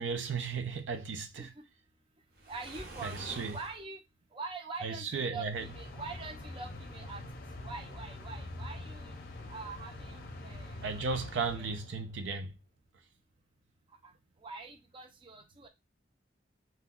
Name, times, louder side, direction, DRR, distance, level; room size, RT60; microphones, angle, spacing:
voice 1, 0.0-1.5 3.0-3.6 4.8-5.7 10.8-12.5, right 4 dB, 80° right, 0.5 m, -35 dB
Waves surf, 2.3-3.8, right 2 dB, 55° right, 0.8 m, -46 dB
voice 2, 2.5-4.0 4.3-7.2 7.6-9.2 9.5-10.9 11.3-11.7 14.0-14.1 14.4-15.7, right 4 dB, 30° right, 0.5 m, -44 dB
sound 1, 5.5-12.3, left 2 dB, 50° left, 0.6 m, -45 dB
2.7 x 2.2 x 3.7 m
head